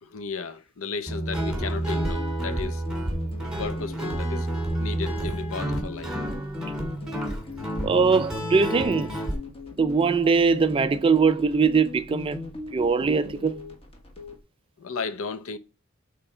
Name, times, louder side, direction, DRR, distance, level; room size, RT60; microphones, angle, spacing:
voice 1, 0.0-2.8 3.6-4.5 4.8-6.1 14.8-15.6, left 5 dB, 70° left, 0.7 m, -34 dB
Guitar, 1.1-9.4, right 1 dB, 5° right, 1.8 m, -30 dB
sound 1, 1.5-14.4, left 3 dB, 25° left, 1.3 m, -40 dB
voice 2, 7.8-9.2 9.8-13.7, right 5 dB, 25° right, 0.3 m, -22 dB
7.9 x 3.4 x 4.4 m
head